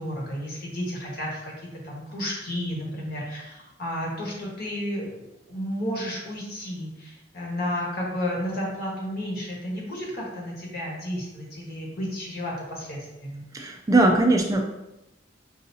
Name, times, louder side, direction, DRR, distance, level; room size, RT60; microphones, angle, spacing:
voice 1, 0.0-1.5 1.8-5.1 5.5-13.4, equal, 55° left, -3 dB, 1.2 m, -32 dB
voice 2, 13.5-14.7, right 2 dB, 20° right, 2 dB, 0.3 m, -20 dB
5.5 x 2.7 x 2.7 m, 0.96 s
head